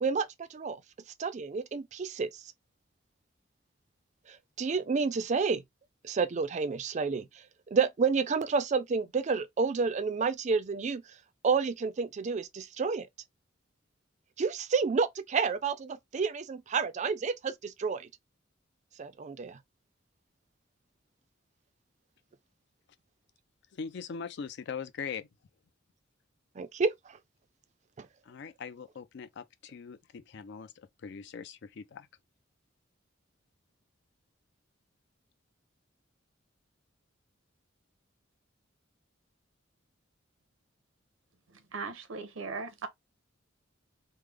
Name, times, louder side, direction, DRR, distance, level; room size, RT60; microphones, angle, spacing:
voice 1, 0.0-0.8 1.2-2.3 4.3-5.6 6.0-7.3 7.7-11.0 11.4-13.1 14.4-18.1 19.0-19.6 26.6-27.2 28.0-28.1, right 5 dB, 35° right, 0.4 m, -30 dB
voice 2, 23.7-25.3 28.2-32.1, left 6 dB, 60° left, 0.4 m, -41 dB
voice 3, 41.7-42.9, right 4 dB, 90° right, 0.7 m, -38 dB
3.2 x 2.0 x 3.4 m
head